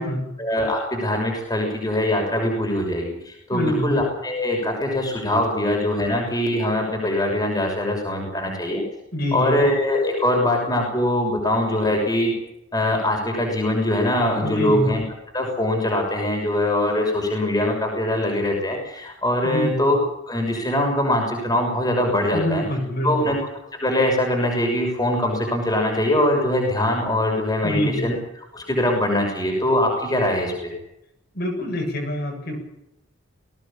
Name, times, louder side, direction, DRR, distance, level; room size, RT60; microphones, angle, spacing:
voice 1, 0.4-8.8 9.3-12.3 12.7-15.0 15.3-20.0 20.3-22.6 23.0-23.4 23.8-28.2 28.5-30.7, left 1 dB, 15° left, 1 dB, 6.3 m, -22 dB
voice 2, 3.5-4.0 9.1-9.6 10.5-10.6 14.4-14.9 19.4-19.9 22.3-23.3 27.6-28.1 31.3-32.6, equal, 45° left, 2 dB, 7.2 m, -25 dB
21.0 x 18.0 x 8.8 m, 0.84 s
head